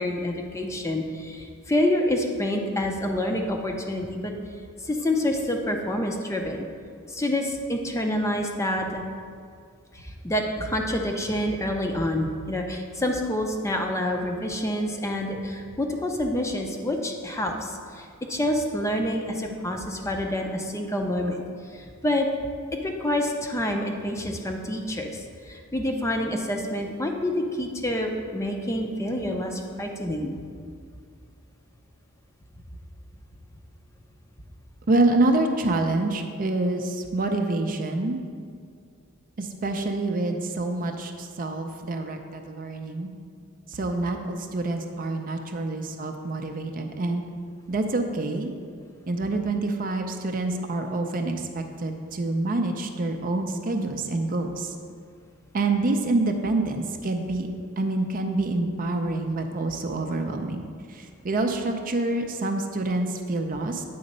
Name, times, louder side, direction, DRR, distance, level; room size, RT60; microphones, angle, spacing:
voice 1, 0.0-4.3 4.8-6.7 7.1-9.0 9.9-21.4 21.6-22.3 22.8-30.3, left 1 dB, 15° left, 3 dB, 0.5 m, -27 dB
voice 2, 34.9-38.2 39.4-43.1 43.7-47.2 47.7-48.5 49.1-54.7 55.5-57.5 57.8-60.6 60.9-63.8, right 2 dB, 40° right, 5 dB, 0.5 m, -27 dB
8.5 x 4.0 x 5.3 m, 2.2 s
head